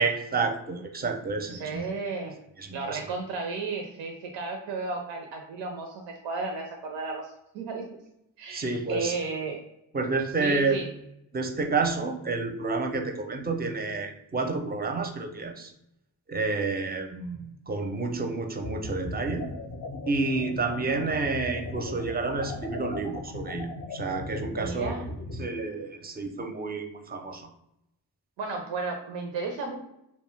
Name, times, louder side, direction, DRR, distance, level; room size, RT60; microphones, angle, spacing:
voice 1, 0.0-1.9 2.6-3.0 8.5-9.1 9.9-10.8 11.3-15.7 16.3-19.5 20.1-24.9 25.4-27.5, right 3 dB, 20° right, 6 dB, 0.5 m, -29 dB
voice 2, 1.5-2.3 2.7-7.9 8.4-9.6 10.4-10.9 24.6-25.1 28.4-29.8, right 3 dB, 80° right, 3 dB, 0.5 m, -33 dB
sound 1, 18.6-25.4, left 2 dB, 35° left, 0.4 m, -37 dB
2.6 x 2.2 x 3.2 m, 0.81 s
supercardioid pair, 40°, 43 cm